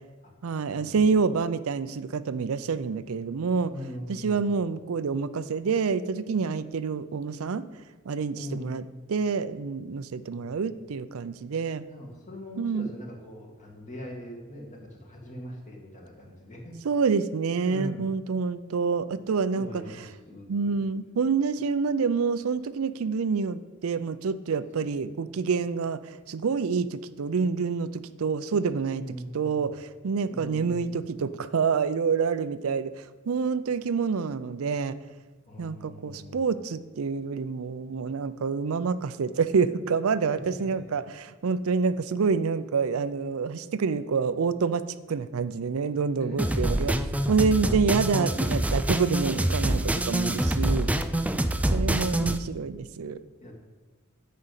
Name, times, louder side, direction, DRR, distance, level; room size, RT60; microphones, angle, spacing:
voice 1, 0.4-3.7 4.1-7.7 8.1-8.8 9.1-11.9 12.6-12.9 16.8-19.8 20.5-29.0 29.3-34.9 35.6-50.9 51.7-53.2, right 5 dB, 70° right, 13 dB, 0.5 m, -27 dB
voice 2, 3.7-4.4 8.3-8.8 10.2-10.5 11.8-16.8 17.7-18.1 19.5-20.7 28.9-29.6 30.3-30.9 35.5-36.4 40.3-40.5 46.3-47.3 50.4-50.8 51.0-51.1 51.6-51.9 53.4-53.5, equal, 35° left, 0 dB, 2.1 m, -41 dB
sound 1, 46.4-52.4, right 1 dB, 5° right, 0.4 m, -26 dB
9.6 x 5.2 x 8.1 m, 1.2 s
head